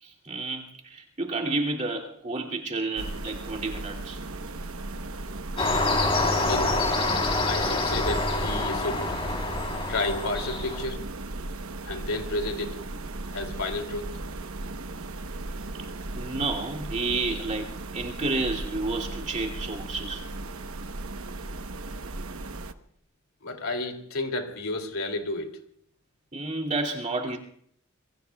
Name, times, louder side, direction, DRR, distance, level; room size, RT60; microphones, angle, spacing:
voice 1, 0.0-4.2 16.1-20.2 26.3-27.4, right 3 dB, 35° right, 2.6 m, -30 dB
sound 1, 3.0-22.7, right 2 dB, 90° right, 1.0 m, -36 dB
sound 2, 5.6-10.8, left 2 dB, 25° left, 3.5 m, -26 dB
voice 2, 6.4-6.8 7.4-9.1 9.9-11.0 11.8-12.8 13.3-14.2 23.4-25.6, left 2 dB, 90° left, 2.7 m, -31 dB
27.0 x 23.0 x 2.3 m
head